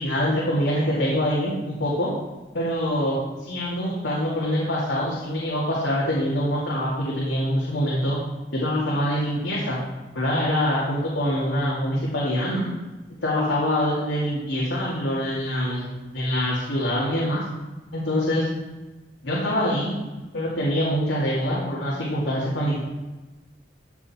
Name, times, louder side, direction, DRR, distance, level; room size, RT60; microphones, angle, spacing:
voice 1, 0.0-2.1 2.5-8.2 8.5-9.8 10.1-12.7 13.2-15.9 16.1-17.4 17.9-18.4 19.2-19.9 20.3-22.8, equal, 75° left, -6 dB, 2.5 m, -24 dB
14.5 x 6.7 x 4.4 m, 1.2 s
head